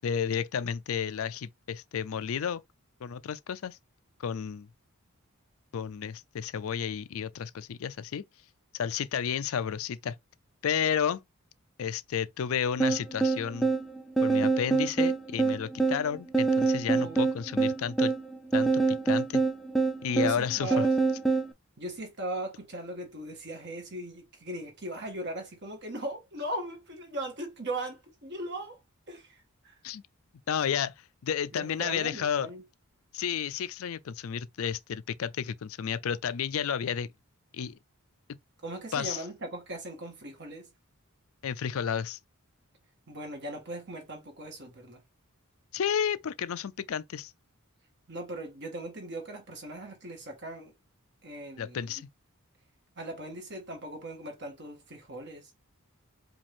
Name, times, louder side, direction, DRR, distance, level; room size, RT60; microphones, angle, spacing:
voice 1, 0.0-2.6 3.0-3.8 4.2-4.7 5.7-8.2 8.7-10.1 10.6-11.2 11.8-13.7 14.2-18.1 18.5-19.4 20.0-20.8 29.8-30.0 30.5-30.9 31.2-32.5 33.1-37.1 37.5-37.8 38.9-39.2 41.4-42.2 45.7-47.3 51.6-52.1, left 7 dB, 70° left, 0.4 m, -31 dB
sound 1, 12.8-21.5, right 4 dB, ahead, 0.5 m, -26 dB
voice 2, 16.9-17.2 20.2-20.9 21.8-28.8 29.1-29.8 31.5-32.6 38.6-40.7 43.1-45.0 48.1-50.7 51.2-52.0 53.0-55.5, right 1 dB, 50° right, 1.7 m, -39 dB
5.1 x 2.5 x 3.5 m
head